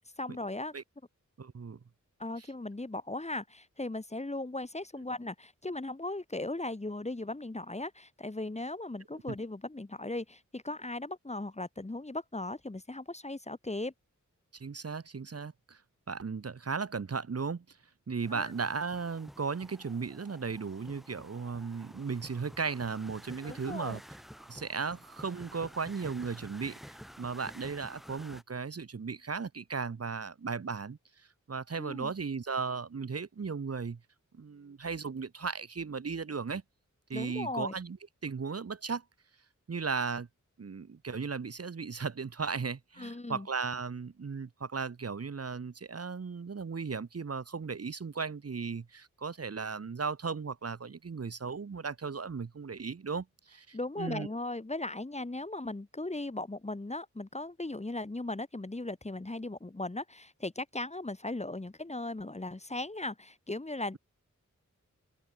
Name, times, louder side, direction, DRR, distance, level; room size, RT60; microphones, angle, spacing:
voice 1, 0.2-0.7 2.2-13.9 18.3-18.5 23.4-24.0 31.8-32.1 37.1-37.7 43.0-43.5 53.7-64.0, left 2 dB, 20° left, 1.3 m, -38 dB
voice 2, 1.4-1.8 2.4-2.5 9.3-9.4 14.5-15.8 16.1-17.8 18.1-24.0 24.5-26.8 27.2-34.0 34.3-36.6 37.1-38.0 38.2-39.0 39.7-40.3 40.6-54.3, right 5 dB, 50° right, 1.0 m, -36 dB
sound 1, 18.2-28.4, equal, ahead, 7.7 m, -51 dB
open air
wide cardioid pair, 65°, 31 cm